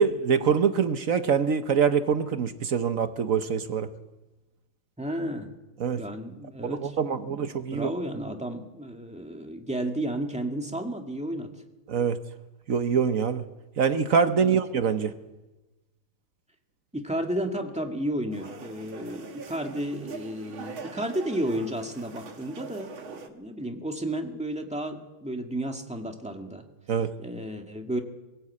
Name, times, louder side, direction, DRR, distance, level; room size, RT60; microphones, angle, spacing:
voice 1, 0.0-3.9 5.8-6.0 6.6-7.9 11.9-12.2 12.7-13.4 13.8-15.1 26.9-27.1, right 6 dB, 55° right, 10 dB, 1.1 m, -24 dB
voice 2, 5.0-5.5 6.0-6.9 7.7-11.5 14.4-14.6 16.9-26.6 27.2-28.0, right 1 dB, 5° right, 3 dB, 1.8 m, -32 dB
sound 1, 18.3-23.3, right 5 dB, 85° right, 2.5 m, -42 dB
22.5 x 16.0 x 8.6 m, 1.1 s
omnidirectional pair, 2.2 m